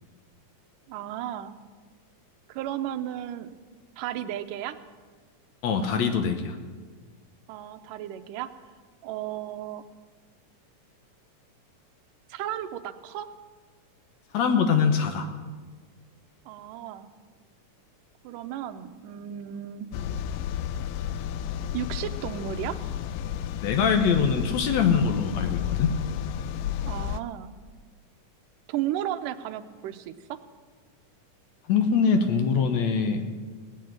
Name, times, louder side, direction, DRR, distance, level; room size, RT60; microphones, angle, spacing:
voice 1, 0.9-1.5 2.5-3.5 4.0-4.8 7.5-8.5 9.0-9.8 12.3-13.3 16.5-17.1 18.2-20.0 21.7-22.8 26.8-27.5 28.7-30.4, right 11 dB, 90° right, 10 dB, 2.3 m, -34 dB
voice 2, 5.6-6.6 14.3-15.3 23.6-25.9 31.7-33.2, left 6 dB, 70° left, 7 dB, 2.1 m, -23 dB
sound 1, 19.9-27.2, left 10 dB, 85° left, 1.6 m, -32 dB
17.5 x 8.6 x 9.0 m, 1.5 s
omnidirectional pair, 3.7 m